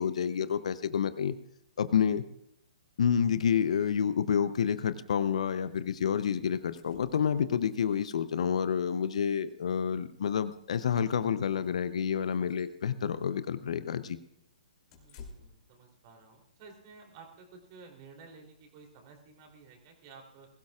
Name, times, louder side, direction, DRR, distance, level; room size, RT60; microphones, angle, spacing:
voice 1, 0.0-1.4 1.8-2.2 3.0-14.2, left 7 dB, 60° left, 14 dB, 0.7 m, -29 dB
sound 1, 5.8-5.9 6.2-6.3 6.5-7.8 9.0-9.1 9.5-9.6 10.1-11.1 11.5-11.8 12.2-12.8 14.9-15.7, left 4 dB, 35° left, 3.0 m, -54 dB
voice 2, 14.9-20.5, right 4 dB, 35° right, 2 dB, 3.3 m, -53 dB
21.5 x 15.5 x 2.4 m, 0.72 s
figure-of-eight pair, 125°, 4 cm